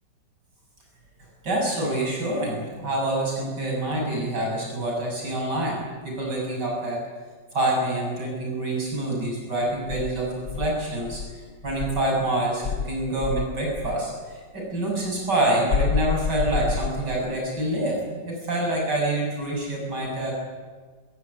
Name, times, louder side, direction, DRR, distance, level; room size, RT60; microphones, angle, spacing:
voice 1, 1.4-7.0 7.5-20.3, right 1 dB, 70° right, -1 dB, 8.1 m, -26 dB
Insect, 9.9-12.2 12.6-14.1 15.7-17.4, left 6 dB, 55° left, 1.2 m, -29 dB
26.5 x 15.5 x 9.8 m, 1.5 s
omnidirectional pair, 1.9 m